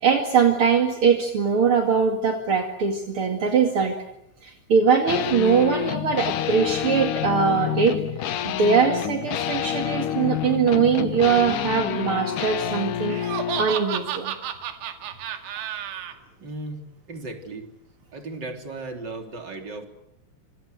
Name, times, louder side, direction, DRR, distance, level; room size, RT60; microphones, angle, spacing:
voice 1, 0.0-3.9 4.4-8.0 8.4-13.3 13.6-14.3, right 6 dB, 40° right, 4 dB, 2.1 m, -21 dB
sound 1, 5.1-13.7, left 10 dB, 70° left, 2.0 m, -28 dB
Laughter, 13.1-16.1, right 9 dB, 75° right, 4.3 m, -31 dB
voice 2, 15.5-15.9 16.4-16.8 17.1-17.7 18.1-19.9, right 2 dB, 25° right, 6 dB, 3.3 m, -36 dB
27.0 x 27.0 x 8.0 m, 0.79 s
omnidirectional pair, 5.4 m